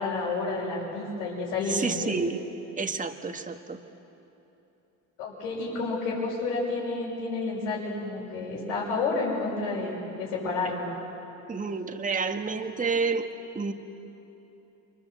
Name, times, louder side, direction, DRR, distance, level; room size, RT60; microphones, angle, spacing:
voice 1, 0.0-2.1 5.2-10.9, left 3 dB, 90° left, -8 dB, 6.6 m, -30 dB
voice 2, 1.7-2.4 2.8-3.8 11.5-13.3 13.5-13.7, right 4 dB, 20° right, 5 dB, 1.6 m, -29 dB
29.0 x 24.0 x 8.0 m, 3.0 s
supercardioid pair, 85°, 39 cm